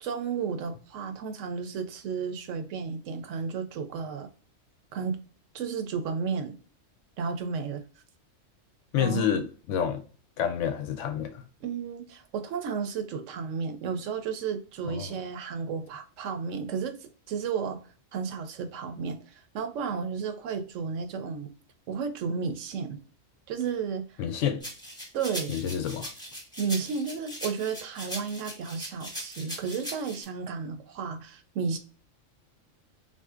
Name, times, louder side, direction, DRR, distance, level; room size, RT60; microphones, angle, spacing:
voice 1, 0.0-4.3 4.9-5.2 5.5-6.6 7.2-7.8 9.0-9.4 11.6-17.8 18.1-21.5 21.9-23.0 23.5-24.1 25.1-25.6 26.6-31.8, right 6 dB, 75° right, 0.9 m, -33 dB
voice 2, 8.9-10.0 10.4-11.4 14.9-15.1 24.2-24.7 25.5-26.1, left 8 dB, 70° left, 0.9 m, -29 dB
sound 1, 24.6-30.2, equal, 5° left, 0.8 m, -40 dB
3.7 x 2.6 x 2.3 m
omnidirectional pair, 1.4 m